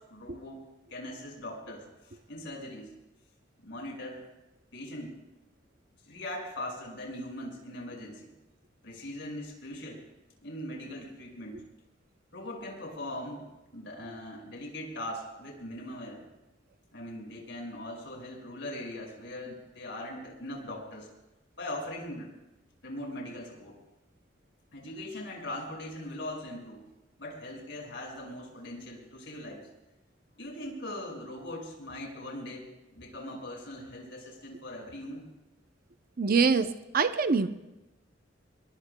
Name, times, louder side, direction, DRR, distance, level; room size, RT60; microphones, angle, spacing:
voice 1, 0.0-2.9 3.6-4.2 4.7-5.2 6.0-8.3 8.8-10.0 10.4-11.6 12.3-16.2 16.9-21.1 21.6-22.3 22.8-23.8 24.7-26.9 27.2-29.7 30.4-35.3, left 1 dB, 75° left, -1 dB, 5.8 m, -40 dB
voice 2, 36.2-37.5, right 5 dB, 50° right, 9 dB, 0.6 m, -25 dB
28.0 x 21.0 x 2.3 m, 1.0 s
head